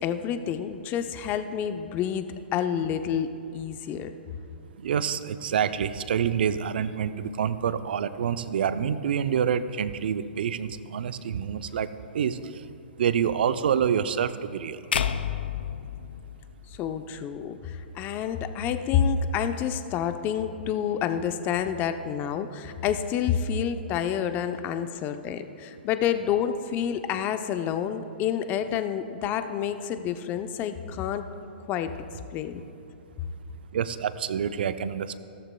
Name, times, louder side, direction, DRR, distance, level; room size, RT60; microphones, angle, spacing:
voice 1, 0.0-2.3 2.5-3.3 3.5-4.1 16.8-31.2 31.7-31.9 32.3-32.6, left 8 dB, 30° left, 9 dB, 0.7 m, -28 dB
voice 2, 4.8-11.9 12.1-12.4 13.0-14.8 33.7-35.2, right 8 dB, 65° right, 13 dB, 0.5 m, -27 dB
sound 1, 14.9-17.2, left 8 dB, 75° left, 0.5 m, -30 dB
16.0 x 13.5 x 2.3 m, 2.7 s
hypercardioid pair, 115°, 6 cm